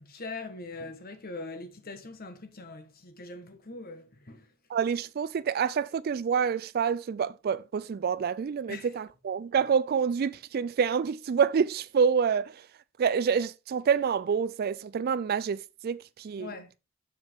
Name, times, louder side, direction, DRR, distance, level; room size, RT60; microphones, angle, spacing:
voice 1, 0.0-4.5 8.7-8.9 16.4-16.7, left 3 dB, 45° left, 1.4 m, -42 dB
voice 2, 4.7-12.7 13.0-16.5, right 6 dB, 45° right, 0.3 m, -27 dB
7.4 x 7.1 x 3.5 m
head